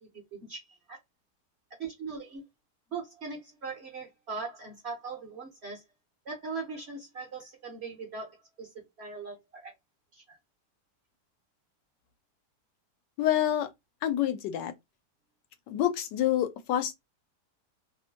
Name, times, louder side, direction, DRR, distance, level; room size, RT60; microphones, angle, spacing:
voice 1, 0.0-1.0 1.8-2.4 2.9-5.8 6.2-9.7 10.1-10.4, right 4 dB, 55° right, 0.8 m, -40 dB
voice 2, 13.2-13.7 14.0-14.7 15.7-16.9, left 11 dB, 90° left, 1.2 m, -27 dB
3.0 x 2.1 x 2.8 m
omnidirectional pair, 1.8 m